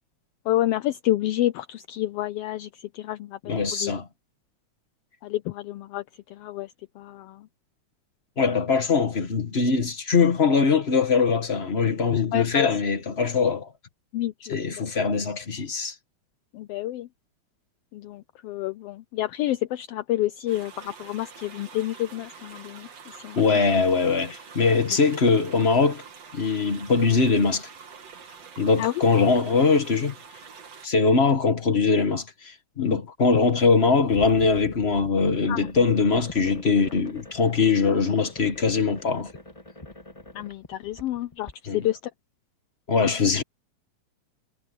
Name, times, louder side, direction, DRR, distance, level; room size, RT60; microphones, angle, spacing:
voice 1, 0.4-3.9 5.2-7.5 12.3-12.7 14.1-14.6 16.5-17.1 17.9-23.6 28.8-28.9 32.8-33.0 35.5-35.7 40.3-42.1, left 14 dB, 85° left, 1.3 m, -29 dB
voice 2, 3.5-4.0 8.4-13.7 14.5-15.9 23.3-26.0 26.3-27.7 28.6-30.1 30.8-39.3 41.7-41.8 42.9-43.4, left 4 dB, 35° left, 1.0 m, -22 dB
sound 1, 20.5-30.9, right 6 dB, 60° right, 3.6 m, -46 dB
sound 2, 34.1-41.5, left 2 dB, 15° left, 1.7 m, -44 dB
omnidirectional pair, 3.3 m